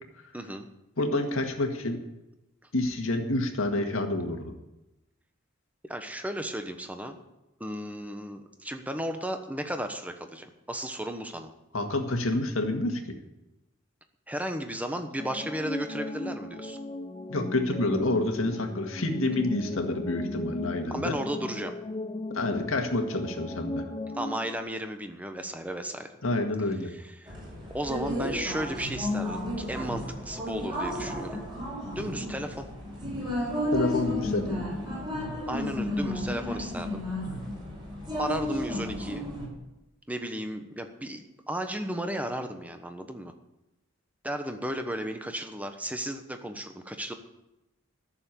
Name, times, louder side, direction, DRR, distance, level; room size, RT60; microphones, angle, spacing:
voice 1, 0.3-0.6 5.9-7.2 7.6-11.5 14.3-16.8 20.9-21.7 24.1-26.1 26.8-27.3 27.7-31.4 31.9-32.7 35.5-37.0 38.2-39.3 40.1-43.3 44.2-47.1, right 1 dB, 5° right, 7 dB, 1.1 m, -34 dB
voice 2, 1.0-2.0 2.7-4.5 11.7-13.0 17.3-21.2 22.3-23.8 26.2-26.9 33.7-34.6, left 2 dB, 80° left, 4 dB, 1.9 m, -28 dB
sound 1, 15.2-24.6, left 2 dB, 25° left, 0.6 m, -37 dB
sound 2, 27.2-39.5, left 1 dB, 25° right, 5.4 m, -33 dB
13.0 x 7.1 x 8.8 m, 0.94 s
head